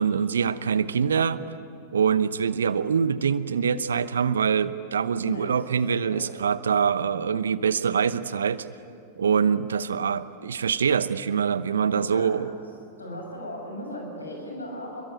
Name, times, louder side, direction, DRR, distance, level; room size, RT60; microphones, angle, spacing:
voice 1, 0.0-1.4 1.9-8.7 9.2-12.5, right 7 dB, 75° right, 15 dB, 0.9 m, -24 dB
voice 2, 5.2-5.6 6.0-6.3 6.9-7.2 11.9-12.4 13.0-15.0, equal, 85° left, 2 dB, 7.2 m, -37 dB
27.5 x 22.5 x 9.1 m, 2.5 s
figure-of-eight pair, 95°, 0 cm